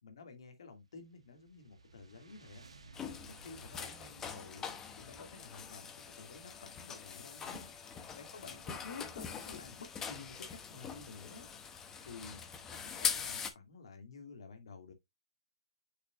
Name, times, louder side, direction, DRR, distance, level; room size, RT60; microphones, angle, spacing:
voice 1, 0.0-2.7 3.3-5.9 6.2-11.5 12.0-12.4 12.7-14.9, left 4 dB, 65° left, 2.2 m, -51 dB
sound 1, 0.8-6.3, right 4 dB, 90° right, 1.6 m, -59 dB
sound 2, 2.9-13.5, left 6 dB, 15° left, 0.8 m, -42 dB
6.5 x 6.0 x 2.5 m
hypercardioid pair, 155°, 3 cm